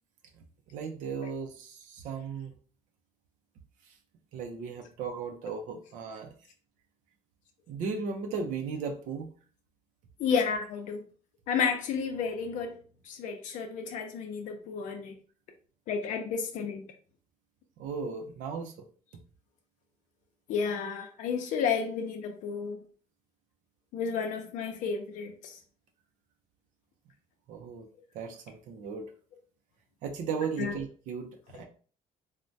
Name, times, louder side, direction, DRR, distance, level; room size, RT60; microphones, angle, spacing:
voice 1, 0.7-2.5 3.8-4.0 4.3-6.3 7.7-9.3 17.8-18.7 27.5-27.9 28.1-29.1 30.0-31.6, right 5 dB, 80° right, 0.5 m, -36 dB
voice 2, 10.2-11.0 11.5-12.8 13.1-15.1 15.9-16.9 20.5-22.8 23.9-25.6 30.6-30.7, left 6 dB, 75° left, 0.5 m, -31 dB
3.2 x 2.1 x 2.6 m
cardioid pair, 135°, 13 cm